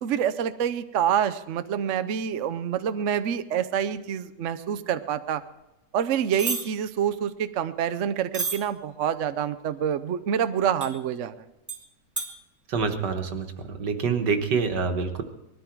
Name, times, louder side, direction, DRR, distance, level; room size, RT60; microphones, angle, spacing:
voice 1, 0.0-5.4 5.9-11.3, right 9 dB, 60° right, 11 dB, 0.9 m, -27 dB
sound 1, 6.3-6.6 8.3-8.6 10.8-10.9 11.7-11.8 12.2-12.3, right 3 dB, 10° right, 1.9 m, -29 dB
voice 2, 12.7-15.2, right 5 dB, 80° right, 6 dB, 2.0 m, -26 dB
20.0 x 13.5 x 4.6 m, 0.95 s
omnidirectional pair, 1.8 m